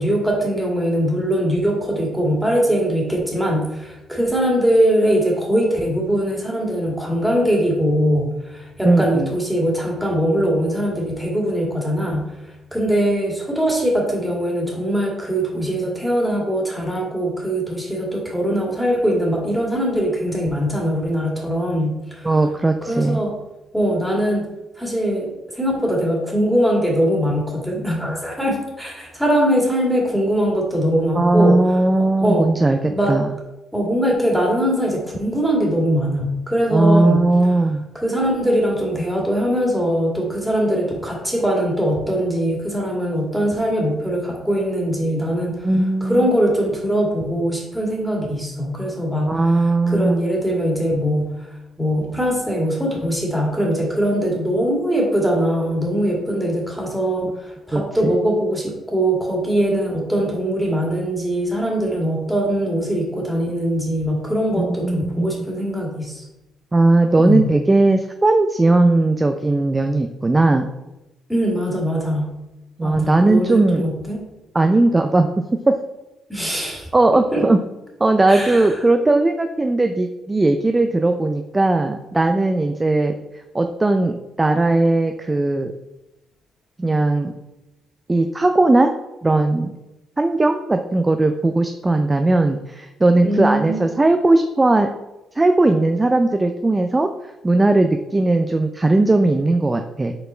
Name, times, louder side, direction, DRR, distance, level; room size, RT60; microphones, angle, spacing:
voice 1, 0.0-12.3 12.7-22.3 22.8-23.3 23.7-24.5 24.8-31.6 32.2-32.5 32.9-33.1 33.7-37.3 38.0-45.7 46.0-49.4 49.9-51.3 51.8-66.2 67.2-67.5 71.3-72.3 72.8-74.2 76.3-76.9 77.3-77.4 78.3-78.7 93.2-94.1, equal, ahead, -2 dB, 2.0 m, -21 dB
voice 2, 8.8-9.3 22.2-23.2 31.1-33.4 36.7-37.8 45.6-46.3 49.3-50.2 57.7-58.1 64.6-65.3 66.7-70.7 72.8-73.8 74.5-75.3 75.7-75.8 76.9-77.6 78.0-83.2 83.5-85.7 86.8-87.3 88.1-88.9 89.2-89.7 90.2-94.9 95.4-97.1 97.4-100.1, right 2 dB, 20° right, 6 dB, 0.4 m, -18 dB
5.5 x 4.2 x 4.3 m, 0.97 s
cardioid pair, 90°, 0 cm